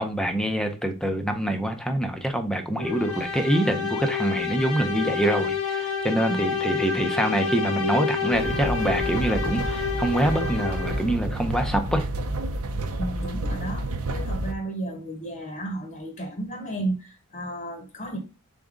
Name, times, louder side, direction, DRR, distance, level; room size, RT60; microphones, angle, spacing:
voice 1, 0.0-12.1, right 1 dB, 5° left, 0.6 m, -25 dB
sound 1, 2.8-11.2, left 6 dB, 85° left, 1.3 m, -29 dB
voice 2, 6.3-6.8 13.0-18.2, right 1 dB, 40° left, 0.9 m, -33 dB
sound 2, 8.3-14.5, right 1 dB, 70° right, 0.7 m, -30 dB
4.1 x 3.7 x 3.6 m
head